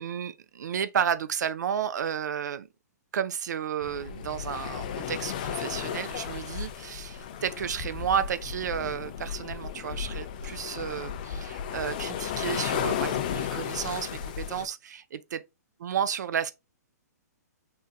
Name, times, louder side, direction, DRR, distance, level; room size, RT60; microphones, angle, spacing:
voice 1, 0.0-2.7 3.1-15.4 15.8-16.5, right 8 dB, 80° right, 0.3 m, -32 dB
sound 1, 3.8-14.7, left 9 dB, 30° left, 0.3 m, -34 dB
3.7 x 2.6 x 2.3 m
hypercardioid pair, 175°, 9 cm